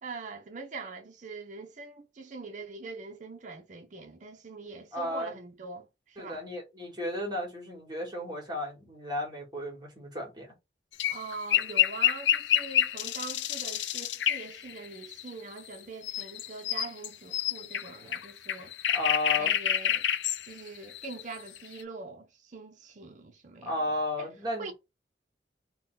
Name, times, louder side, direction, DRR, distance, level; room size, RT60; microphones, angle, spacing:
voice 1, 0.0-6.4 11.1-18.7 19.4-20.0 20.4-23.8 24.2-24.3 24.6-24.7, right 4 dB, 45° right, 0.6 m, -43 dB
voice 2, 4.9-5.4 6.2-10.5 18.9-19.5 23.6-24.7, left 1 dB, 25° right, 1.6 m, -34 dB
sound 1, 11.0-15.8 16.0-21.8, left 10 dB, 90° left, 0.4 m, -28 dB
3.9 x 2.2 x 3.9 m
head